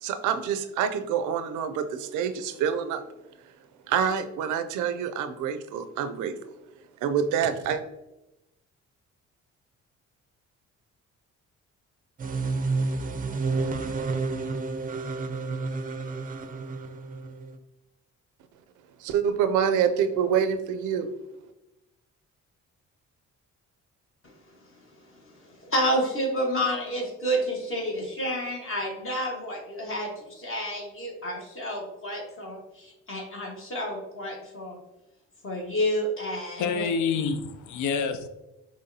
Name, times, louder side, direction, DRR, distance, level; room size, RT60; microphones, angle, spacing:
voice 1, 0.0-3.0 3.9-6.4 7.0-7.8 19.0-21.1, right 8 dB, 90° right, 10 dB, 0.5 m, -26 dB
sound 1, 12.2-17.6, right 3 dB, 30° right, 0.4 m, -30 dB
voice 2, 25.6-34.8 35.4-36.8, equal, 45° left, -1 dB, 1.4 m, -30 dB
voice 3, 36.6-38.3, left 5 dB, 75° left, 9 dB, 0.5 m, -27 dB
5.5 x 3.1 x 2.7 m, 0.95 s
cardioid pair, 90°, 30 cm